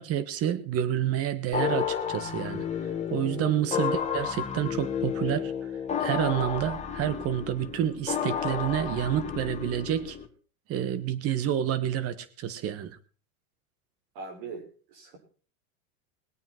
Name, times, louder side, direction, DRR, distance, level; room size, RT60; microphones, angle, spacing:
voice 1, 0.0-2.6 3.1-5.5 6.0-10.2 10.7-13.0, right 10 dB, 30° right, 15 dB, 1.5 m, -29 dB
sound 1, 1.5-10.3, left 8 dB, 15° left, 1.9 m, -32 dB
voice 2, 14.1-15.2, right 4 dB, 50° right, 4 dB, 6.1 m, -41 dB
21.5 x 8.8 x 4.5 m, 0.40 s
supercardioid pair, 140°, 44 cm